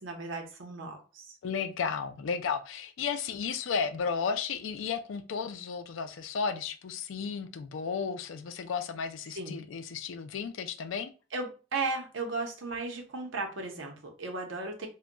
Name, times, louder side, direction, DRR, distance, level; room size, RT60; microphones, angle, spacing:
voice 1, 0.0-1.4 9.3-9.6 11.3-14.9, right 3 dB, 90° right, 0.8 m, -35 dB
voice 2, 1.4-11.1, left 6 dB, 90° left, 0.4 m, -33 dB
2.2 x 2.2 x 3.7 m
head